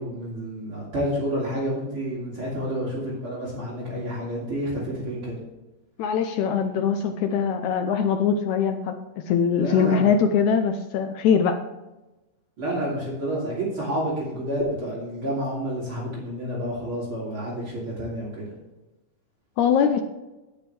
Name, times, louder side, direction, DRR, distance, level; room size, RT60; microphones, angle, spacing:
voice 1, 0.0-5.4 9.6-10.1 12.6-18.5, equal, 40° right, -5 dB, 3.5 m, -29 dB
voice 2, 6.0-9.0 9.3-11.6 19.6-20.0, left 7 dB, 75° left, 7 dB, 1.8 m, -22 dB
16.5 x 6.6 x 3.3 m, 1.0 s
omnidirectional pair, 3.8 m